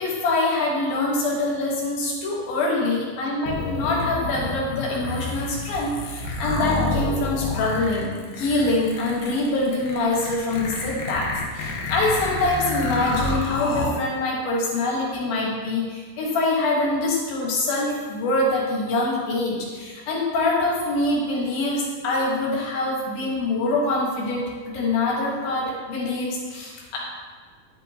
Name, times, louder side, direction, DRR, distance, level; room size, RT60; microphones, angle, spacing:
voice 1, 0.0-24.4 24.7-27.0, left 2 dB, 65° left, -3 dB, 2.6 m, -24 dB
sound 1, 3.4-13.9, left 2 dB, 85° left, 2.0 m, -29 dB
11.0 x 6.3 x 2.8 m, 1.5 s
omnidirectional pair, 5.4 m